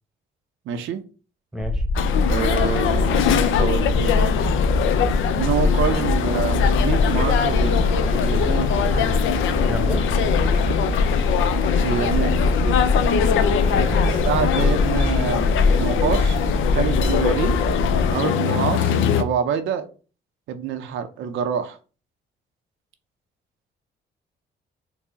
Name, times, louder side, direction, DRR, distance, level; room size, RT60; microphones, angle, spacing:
voice 1, 0.7-1.0 2.3-3.2 3.5-4.5 5.4-8.7 11.8-12.3 14.2-16.4 16.7-17.6 18.1-19.9 20.5-21.8, right 8 dB, 80° right, 7 dB, 0.6 m, -26 dB
sound 1, 1.6-18.1, left 3 dB, 50° left, 1.0 m, -22 dB
sound 2, 2.0-19.2, left 9 dB, 80° left, 0.5 m, -23 dB
sound 3, 7.6-15.0, right 5 dB, 35° right, 0.5 m, -38 dB
voice 2, 9.6-10.0 13.7-14.4, equal, 5° right, 5 dB, 0.9 m, -30 dB
4.5 x 2.0 x 3.9 m, 0.36 s
cardioid pair, 90°, 20 cm